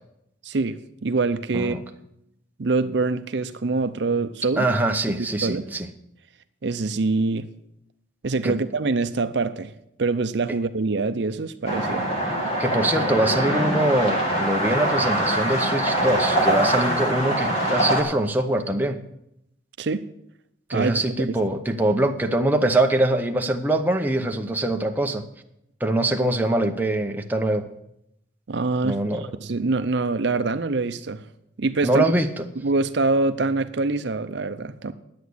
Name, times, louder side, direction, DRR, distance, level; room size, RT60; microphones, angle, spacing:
voice 1, 0.4-1.8 2.6-4.7 5.4-5.6 6.6-7.5 8.2-9.7 10.0-12.1 19.8-20.0 20.7-21.0 21.3-21.4 28.5-29.0 29.4-31.2 31.6-32.0 32.6-34.9, right 3 dB, 60° right, 0.6 m, -24 dB
voice 2, 4.6-5.9 8.4-8.6 12.6-19.0 20.7-25.2 25.8-27.6 28.8-29.3 31.8-32.4, right 1 dB, 10° right, 0.7 m, -23 dB
sound 1, 11.6-18.0, right 1 dB, 30° left, 2.1 m, -23 dB
10.5 x 8.2 x 7.9 m
head